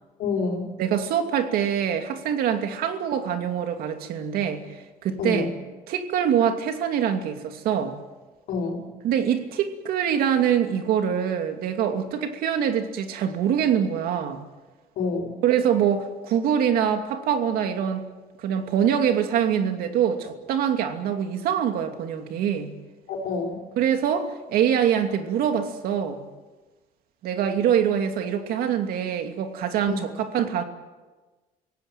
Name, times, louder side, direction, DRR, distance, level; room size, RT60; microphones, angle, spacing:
voice 1, 0.2-0.7 5.2-5.5 8.5-8.9 15.0-15.3 23.1-23.6 29.9-30.0, left 4 dB, 80° left, 1 dB, 5.1 m, -27 dB
voice 2, 0.8-4.6 5.0-5.5 5.9-8.0 9.0-14.4 15.4-18.0 18.4-22.7 23.8-26.2 27.2-30.6, right 8 dB, 80° right, 6 dB, 2.7 m, -24 dB
27.5 x 17.0 x 9.2 m, 1.3 s
cardioid pair, 135°, 15 cm